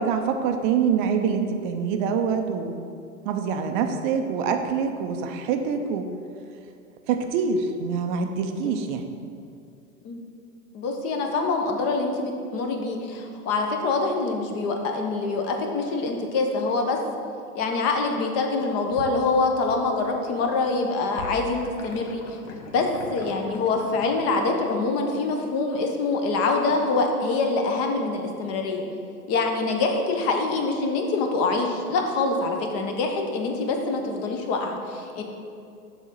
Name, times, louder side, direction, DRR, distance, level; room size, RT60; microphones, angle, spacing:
voice 1, 0.0-2.7 3.2-6.1 7.1-9.2, right 6 dB, 35° right, 6 dB, 0.6 m, -25 dB
voice 2, 10.7-17.0 17.5-22.2 22.7-28.8 29.3-35.2, left 3 dB, 30° left, 3 dB, 0.9 m, -25 dB
sound 1, 18.3-19.9 20.2-24.2, left 3 dB, 60° left, 1.1 m, -42 dB
7.0 x 3.8 x 5.5 m, 2.4 s
hypercardioid pair, 110°, 44 cm